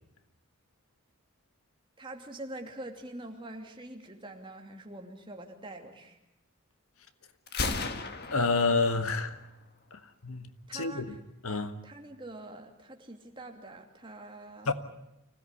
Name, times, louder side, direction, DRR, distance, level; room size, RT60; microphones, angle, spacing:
voice 1, 2.0-6.2 10.7-11.2 11.5-14.7, right 1 dB, 25° right, 2.8 m, -45 dB
Gunshot gunfire, 7.5-9.4, left 3 dB, 50° left, 1.8 m, -35 dB
voice 2, 8.3-9.4 9.9-11.1 11.4-11.7 14.7-14.8, left 3 dB, 80° left, 1.6 m, -29 dB
25.0 x 17.0 x 9.9 m
head